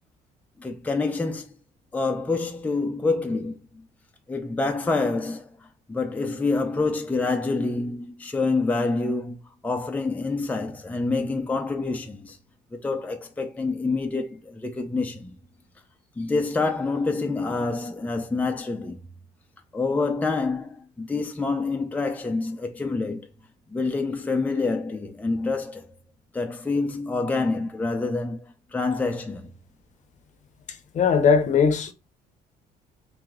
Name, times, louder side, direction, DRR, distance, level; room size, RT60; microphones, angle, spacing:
voice 1, 0.6-1.6 1.9-3.8 4.3-9.4 9.6-12.4 12.7-15.4 16.2-19.0 19.7-23.3 23.7-25.9 26.3-29.5, left 3 dB, 10° left, 0.6 m, -27 dB
voice 2, 30.9-31.9, left 6 dB, 45° left, 0.8 m, -19 dB
3.2 x 2.9 x 3.7 m
cardioid pair, 110°, 17 cm